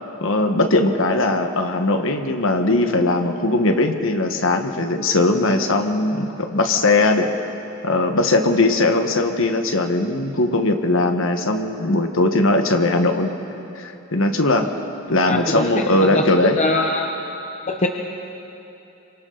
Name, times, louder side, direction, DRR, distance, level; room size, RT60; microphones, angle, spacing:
voice 1, 0.2-7.3 7.8-13.3 13.7-14.7 15.1-16.6, left 2 dB, 65° left, 5 dB, 1.4 m, -19 dB
voice 2, 15.3-16.2 16.5-17.1 17.7-17.9, left 2 dB, 35° left, 2 dB, 0.9 m, -22 dB
27.5 x 25.0 x 4.0 m, 2.8 s
head